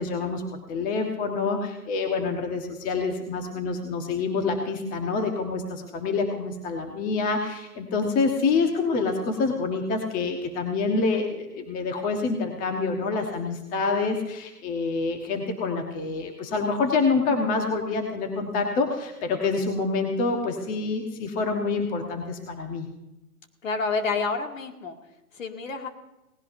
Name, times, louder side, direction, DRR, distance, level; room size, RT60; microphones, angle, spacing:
voice 1, 0.0-22.9, left 4 dB, 20° left, 3 dB, 1.3 m, -27 dB
voice 2, 23.6-25.0 25.3-25.9, left 4 dB, 60° left, 3 dB, 2.3 m, -28 dB
18.5 x 16.5 x 2.7 m, 0.96 s
hypercardioid pair, 135°, 46 cm